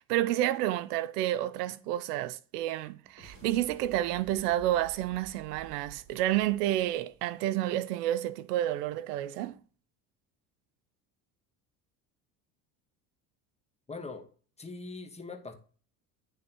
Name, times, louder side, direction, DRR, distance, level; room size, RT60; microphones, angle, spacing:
voice 1, 0.1-9.6, right 13 dB, 80° right, 0.6 m, -30 dB
sound 1, 3.0-7.6, right 6 dB, 30° right, 2.3 m, -53 dB
voice 2, 13.9-14.3 14.6-15.5, left 3 dB, 15° left, 1.2 m, -41 dB
9.6 x 3.5 x 2.9 m
hypercardioid pair, 75°, 47 cm